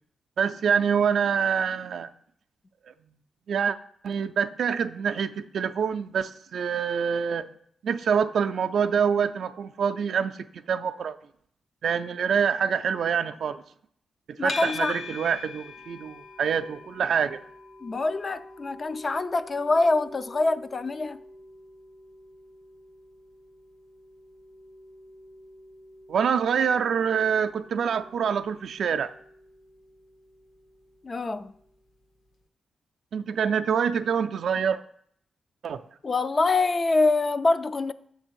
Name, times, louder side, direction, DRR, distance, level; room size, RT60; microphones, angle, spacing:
voice 1, 0.4-2.1 3.5-3.8 4.0-7.4 7.8-11.2 11.8-13.6 14.3-17.4 26.1-29.1 33.1-34.8 35.6-35.9, right 7 dB, 70° right, 0.3 m, -26 dB
voice 2, 14.4-15.0 17.8-21.2 31.0-31.5 36.0-37.9, left 3 dB, 40° left, 0.4 m, -25 dB
sound 1, 14.5-31.7, left 3 dB, 70° left, 1.1 m, -45 dB
7.2 x 3.3 x 6.2 m
cardioid pair, 70°, 0 cm